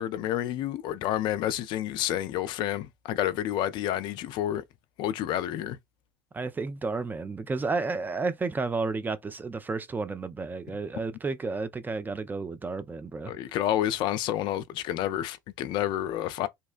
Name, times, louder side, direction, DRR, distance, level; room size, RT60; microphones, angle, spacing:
voice 1, 0.0-4.6 5.0-5.8 13.2-16.5, left 12 dB, 55° left, 0.4 m, -29 dB
voice 2, 6.3-13.3, right 3 dB, 20° right, 0.4 m, -32 dB
2.8 x 2.1 x 2.4 m
hypercardioid pair, 65°, 10 cm